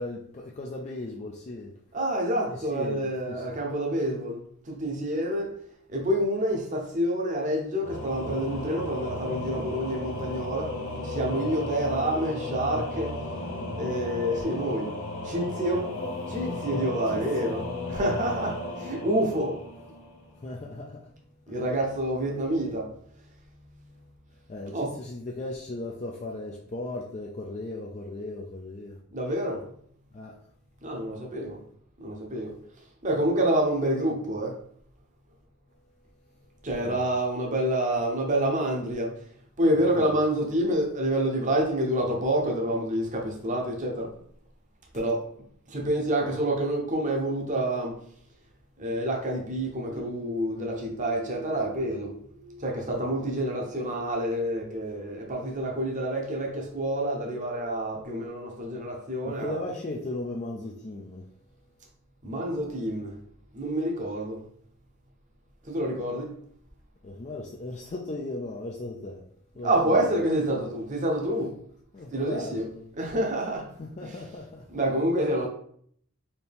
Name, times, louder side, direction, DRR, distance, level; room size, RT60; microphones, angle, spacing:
voice 1, 0.0-1.7 2.5-3.5 17.1-17.6 20.3-21.1 21.5-21.6 24.5-29.0 30.1-30.4 36.8-37.1 40.0-40.1 52.9-53.1 59.3-61.3 67.0-69.3 69.6-70.0 71.9-72.9 73.8-74.7, left 2 dB, 30° left, 0.4 m, -37 dB
voice 2, 1.9-5.5 5.9-13.2 13.8-14.9 15.2-15.9 16.3-17.6 17.9-19.6 21.5-22.9 24.7-24.9 29.1-29.6 30.8-31.6 32.0-32.6 33.0-34.6 36.6-39.1 39.6-44.1 44.9-45.2 45.7-48.0 48.8-52.1 52.6-59.6 62.2-63.2 63.5-64.4 65.6-66.4 69.6-71.5 72.1-72.7 73.0-73.7 74.7-75.5, right 1 dB, 35° right, 0.8 m, -28 dB
Singing / Musical instrument, 7.8-20.4, left 2 dB, 70° left, 1.0 m, -34 dB
sound 1, 49.9-58.1, right 4 dB, 65° right, 0.9 m, -46 dB
4.3 x 2.7 x 3.4 m
head